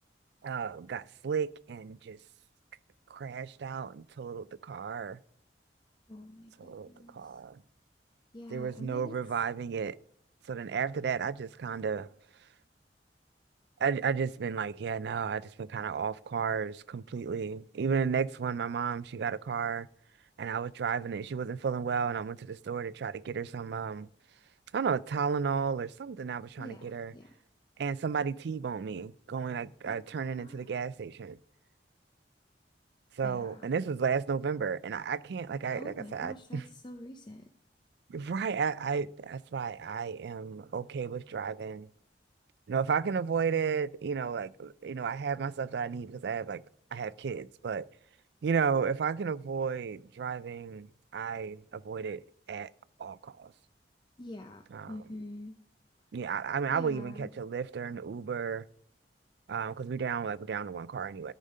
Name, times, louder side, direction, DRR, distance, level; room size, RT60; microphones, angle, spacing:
voice 1, 0.4-2.2 3.1-5.2 6.6-7.6 8.5-10.0 10.5-12.1 13.8-19.9 20.4-24.1 24.7-27.1 27.8-31.4 33.1-36.6 38.1-41.9 42.7-46.6 46.9-47.9 48.4-52.7 53.0-53.5 54.7-55.0 56.1-58.7 59.5-61.3, right 6 dB, 70° right, 0.4 m, -33 dB
voice 2, 6.1-7.4 8.3-9.2 26.6-27.4 29.9-30.6 33.2-33.7 35.8-37.5 54.2-55.6 56.7-57.3, left 1 dB, 25° left, 0.6 m, -46 dB
13.5 x 5.1 x 5.4 m
head